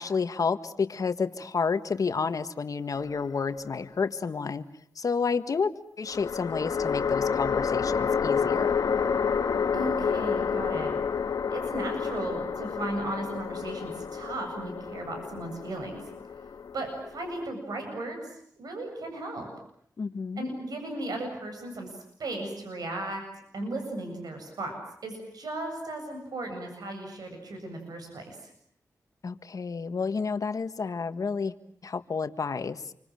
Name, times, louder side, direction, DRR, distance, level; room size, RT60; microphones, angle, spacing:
voice 1, 0.0-4.6 4.9-5.7 6.0-8.8 20.0-20.6 29.2-31.5 31.8-32.8, left 5 dB, 65° left, 10 dB, 1.7 m, -30 dB
sound 1, 2.9-3.8 6.1-17.4, left 6 dB, 80° left, 1.6 m, -29 dB
voice 2, 9.7-10.9 11.5-16.0 16.7-19.5 20.4-21.9 22.2-23.2 23.5-24.7 25.0-28.5, right 2 dB, 80° right, 4 dB, 7.9 m, -36 dB
28.5 x 25.0 x 7.7 m, 0.67 s
cardioid pair, 70°, 6 cm